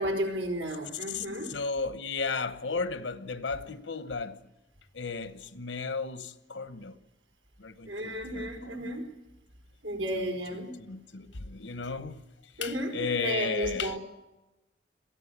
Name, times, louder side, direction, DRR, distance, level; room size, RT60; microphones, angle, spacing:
voice 1, 0.0-1.5 7.9-9.1 9.8-10.7 12.6-14.0, right 1 dB, 90° right, 4.5 m, -33 dB
voice 2, 1.1-4.5 4.9-7.0 7.6-8.9 10.2-14.0, left 4 dB, 85° left, 1.1 m, -35 dB
22.5 x 15.0 x 8.2 m
head